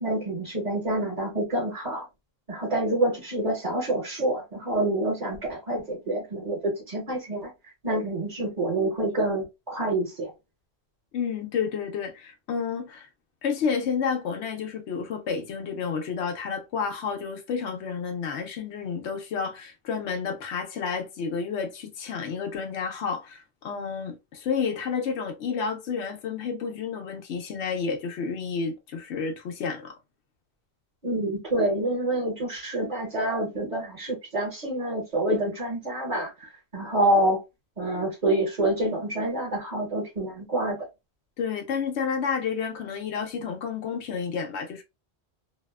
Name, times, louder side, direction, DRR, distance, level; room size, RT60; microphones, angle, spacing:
voice 1, 0.0-2.0 2.5-7.5 7.8-10.3 31.0-37.4 37.8-40.8, right 1 dB, 45° right, 1.1 m, -27 dB
voice 2, 11.1-13.1 13.4-30.0 41.4-44.8, left 6 dB, 85° left, 0.9 m, -30 dB
2.7 x 2.1 x 2.2 m
omnidirectional pair, 1.1 m